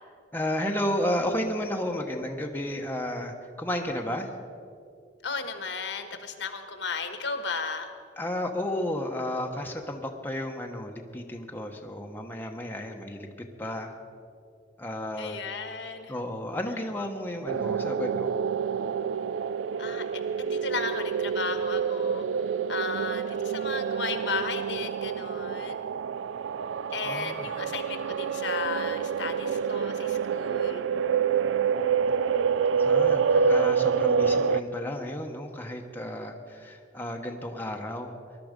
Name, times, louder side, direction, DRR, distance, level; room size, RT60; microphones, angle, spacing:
voice 1, 0.3-4.3 8.2-13.3 13.6-13.9 14.8-15.4 16.1-18.3 27.0-27.5 32.8-38.1, left 1 dB, 10° left, 2 dB, 1.0 m, -32 dB
voice 2, 5.2-7.9 15.2-16.2 19.8-22.3 22.7-25.8 26.9-30.8, left 4 dB, 70° left, 7 dB, 1.3 m, -35 dB
sound 1, 17.5-34.6, right 6 dB, 90° right, 0.4 m, -27 dB
20.0 x 12.0 x 5.2 m, 2.3 s
head